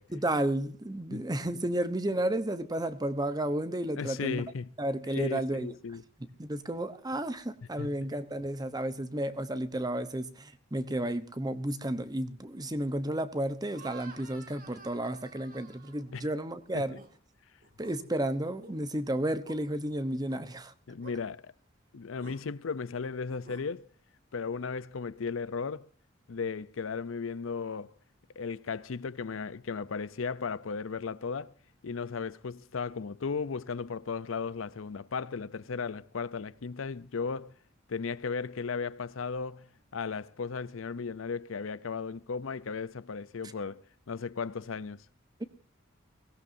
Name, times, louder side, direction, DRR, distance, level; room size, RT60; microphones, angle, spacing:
voice 1, 0.1-4.4 4.8-5.7 6.4-17.0 17.8-20.7 45.4-45.5, right 1 dB, 20° right, 0.9 m, -32 dB
voice 2, 4.0-4.7 5.1-6.0 7.8-8.0 16.1-16.3 16.7-17.0 20.9-21.5 21.9-23.9 24.3-25.9 26.3-27.9 28.4-31.5 31.8-37.5 37.9-45.0, left 5 dB, 80° left, 0.6 m, -36 dB
sound 1, 13.7-16.4 16.8-17.1 17.6-18.0 18.5-18.8 19.4-19.6 20.3-20.4 21.0-21.2 22.1-22.4 23.3-23.7, right 4 dB, 45° right, 2.1 m, -51 dB
22.0 x 16.5 x 2.7 m
head